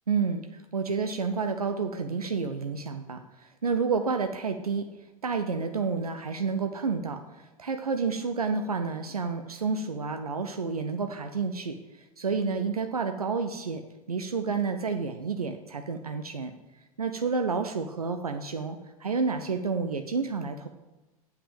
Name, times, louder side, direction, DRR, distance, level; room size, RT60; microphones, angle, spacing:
voice 1, 0.1-4.9 5.2-7.2 7.6-11.8 12.2-13.8 14.1-16.5 17.0-20.7, right 5 dB, 80° right, 6 dB, 0.6 m, -30 dB
8.0 x 5.8 x 7.4 m, 1.1 s
figure-of-eight pair, 90°, 19 cm